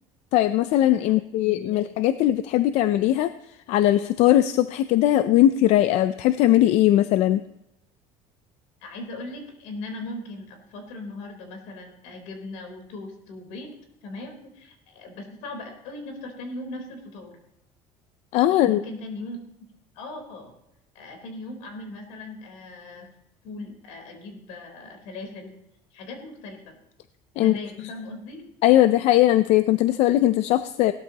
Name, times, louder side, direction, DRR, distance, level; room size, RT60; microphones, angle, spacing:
voice 1, 0.3-3.3 3.7-7.4 18.3-18.8 27.4-27.6 28.6-30.9, left 13 dB, 60° left, 12 dB, 0.5 m, -19 dB
voice 2, 1.4-1.8 8.8-13.7 14.0-17.3 18.5-19.4 19.9-20.6 20.9-23.1 23.4-25.6 25.9-26.8 27.4-28.4, left 2 dB, 85° left, 4 dB, 3.9 m, -39 dB
17.5 x 12.5 x 2.9 m, 0.84 s
cardioid pair, 150°, 12 cm